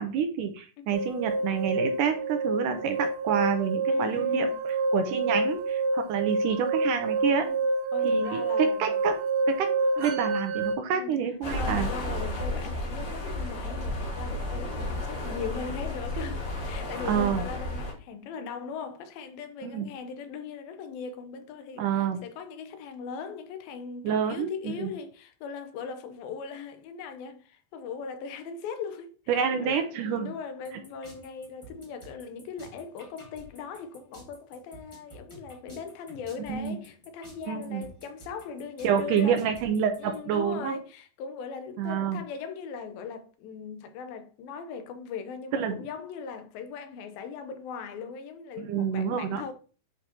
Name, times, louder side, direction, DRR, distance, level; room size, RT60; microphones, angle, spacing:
voice 1, 0.0-7.5 8.0-9.2 9.5-9.7 10.0-11.9 17.1-17.4 19.6-19.9 21.8-22.2 24.0-24.5 24.8-24.9 29.3-30.3 36.5-36.8 37.5-37.9 38.8-40.8 41.8-42.2 45.5-45.8 48.6-49.4, right 7 dB, 75° right, 2.0 m, -28 dB
sound 1, 0.9-10.8, right 2 dB, 55° right, 2.2 m, -28 dB
voice 2, 3.9-4.6 7.4-7.6 7.9-8.9 10.9-11.2 11.6-39.4 40.0-49.5, left 5 dB, 80° left, 2.6 m, -39 dB
sound 2, 11.4-17.9, left 1 dB, 65° left, 4.0 m, -32 dB
sound 3, 30.6-40.2, equal, 15° left, 0.9 m, -50 dB
10.5 x 4.8 x 2.9 m
omnidirectional pair, 4.4 m